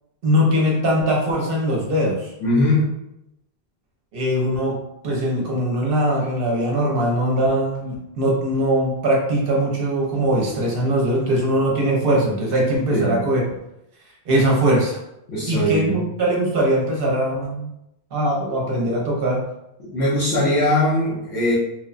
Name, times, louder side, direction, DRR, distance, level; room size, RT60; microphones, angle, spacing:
voice 1, 0.2-2.3 4.1-13.4 14.3-15.0 15.5-17.7 18.1-19.5, right 1 dB, 65° right, -2 dB, 0.8 m, -21 dB
voice 2, 2.4-2.9 12.9-13.2 15.3-16.0 19.8-21.5, left 1 dB, 85° left, -10 dB, 1.1 m, -20 dB
3.1 x 2.1 x 2.4 m, 0.86 s
omnidirectional pair, 1.1 m